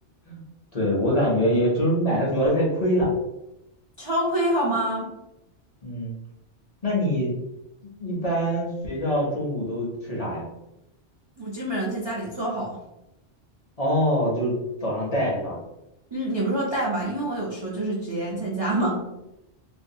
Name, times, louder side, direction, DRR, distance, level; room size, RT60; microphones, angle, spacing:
voice 1, 0.7-3.1 5.8-6.2 6.8-7.3 7.8-10.4 13.8-14.5 14.8-15.6, equal, 45° left, -5 dB, 0.6 m, -24 dB
voice 2, 4.0-5.1 11.4-12.8 16.1-19.0, right 1 dB, 45° right, -6 dB, 0.3 m, -26 dB
2.5 x 2.3 x 2.6 m, 0.89 s
omnidirectional pair, 1.2 m